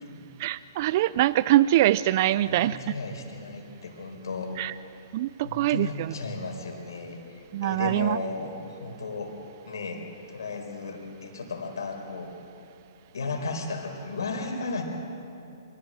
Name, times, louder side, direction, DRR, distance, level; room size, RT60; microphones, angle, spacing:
voice 1, 0.4-2.9 4.6-4.7 5.1-6.1 7.5-8.2, right 14 dB, 45° right, 18 dB, 0.4 m, -23 dB
voice 2, 2.4-4.6 5.4-9.3 9.7-12.3 13.1-14.8, left 3 dB, 75° left, 3 dB, 4.4 m, -35 dB
25.0 x 16.5 x 7.7 m, 2.6 s
hypercardioid pair, 135°, 2 cm